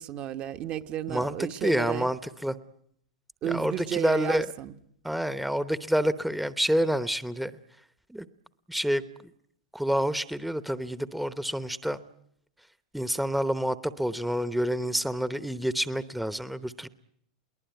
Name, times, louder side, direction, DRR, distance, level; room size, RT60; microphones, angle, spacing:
voice 1, 0.0-2.1 3.4-4.7, right 10 dB, 45° right, 1.2 m, -33 dB
voice 2, 1.6-2.6 3.4-4.5 5.0-7.5 8.1-8.3 8.7-9.0 9.7-12.0 12.9-16.9, equal, ahead, 0.9 m, -28 dB
22.0 x 19.0 x 9.3 m
hypercardioid pair, 110°, 3 cm